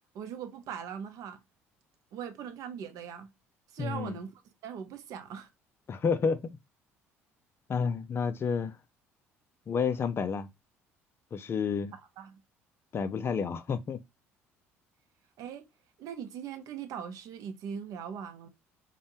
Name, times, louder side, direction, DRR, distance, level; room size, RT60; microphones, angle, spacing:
voice 1, 0.1-1.4 2.1-3.3 3.7-4.3 4.6-5.5 12.2-12.4 15.4-15.6 16.0-18.5, right 8 dB, 55° right, 0.6 m, -40 dB
voice 2, 3.8-4.2 5.9-6.4 7.7-8.8 9.7-10.5 11.3-11.9 12.9-14.0, left 6 dB, 35° left, 0.4 m, -30 dB
2.6 x 2.1 x 2.8 m
figure-of-eight pair, 55°, 7 cm